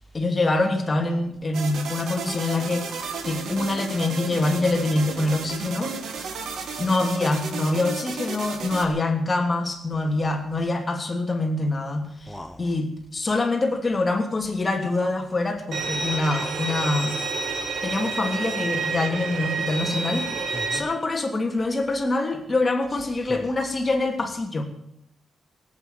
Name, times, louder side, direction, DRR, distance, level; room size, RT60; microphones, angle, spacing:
voice 1, 0.1-5.9 6.8-17.2 17.8-24.6, left 2 dB, 25° left, 3 dB, 3.0 m, -25 dB
sound 1, 1.5-8.8, right 5 dB, 85° right, 2.4 m, -33 dB
voice 2, 6.3-6.8 12.3-12.7 17.7-17.8 20.5-20.9 23.3-23.4, equal, 5° left, 4 dB, 1.1 m, -39 dB
Bowed string instrument, 15.7-20.8, right 4 dB, 60° right, 2.6 m, -28 dB
17.5 x 8.9 x 9.2 m, 0.73 s
cardioid pair, 115°, 0 cm